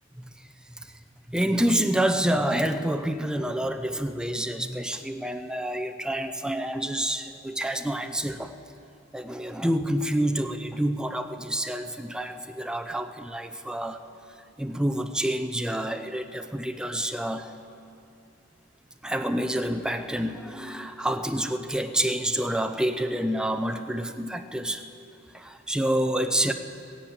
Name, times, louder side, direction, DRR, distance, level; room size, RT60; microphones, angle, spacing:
voice 1, 1.3-8.5 9.1-14.0 14.6-17.5 19.0-24.8 25.3-26.5, right 1 dB, 5° right, 7 dB, 0.6 m, -28 dB
15.5 x 10.5 x 8.9 m, 2.7 s
head